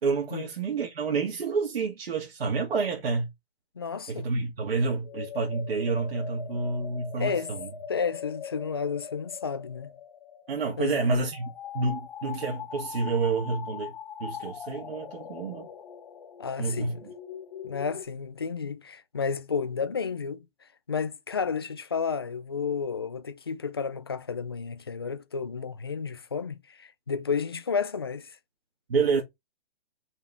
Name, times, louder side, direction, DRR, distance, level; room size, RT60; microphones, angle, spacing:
voice 1, 0.0-3.3 4.1-7.7 10.5-13.9 14.2-15.7 16.6-17.1 28.9-29.2, right 4 dB, 65° right, 2.6 m, -29 dB
voice 2, 3.8-4.3 7.2-7.5 7.9-9.9 10.8-11.0 16.4-17.0 17.6-28.4, left 5 dB, 25° left, 0.3 m, -32 dB
sound 1, 4.8-18.1, left 8 dB, 45° left, 1.3 m, -41 dB
5.4 x 4.8 x 3.8 m
hypercardioid pair, 170°, 31 cm